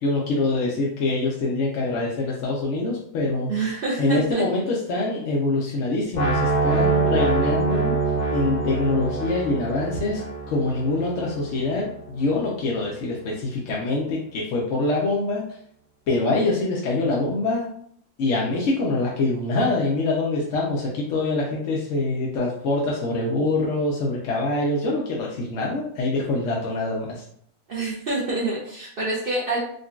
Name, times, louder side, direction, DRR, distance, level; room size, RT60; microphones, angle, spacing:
voice 1, 0.0-3.5 4.0-8.0 8.3-10.2 10.5-15.4 16.1-17.7 18.2-27.2, left 2 dB, 65° left, -3 dB, 0.8 m, -24 dB
voice 2, 3.5-4.5 27.7-29.6, right 2 dB, 85° right, -5 dB, 0.5 m, -27 dB
sound 1, 6.1-12.1, right 3 dB, 90° left, 0.4 m, -25 dB
3.7 x 2.2 x 2.4 m, 0.65 s
omnidirectional pair, 1.7 m